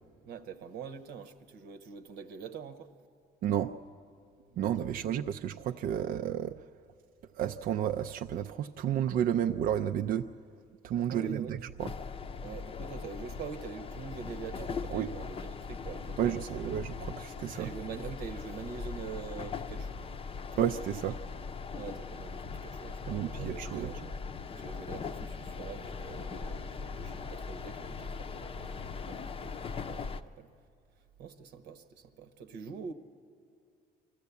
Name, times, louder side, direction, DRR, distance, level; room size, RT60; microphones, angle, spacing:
voice 1, 0.2-2.9 5.0-5.3 11.1-11.6 12.4-16.7 17.6-20.0 21.7-24.1 24.5-30.5 31.2-32.9, right 6 dB, 85° right, 1.1 m, -44 dB
voice 2, 3.4-3.7 4.6-6.7 7.3-10.3 10.8-11.9 14.9-15.1 16.2-17.7 20.6-21.2 23.1-23.9, right 10 dB, 60° right, 0.4 m, -31 dB
sound 1, 11.8-30.2, left 5 dB, 35° left, 0.6 m, -40 dB
24.5 x 14.5 x 8.3 m
cardioid pair, 110°, 17 cm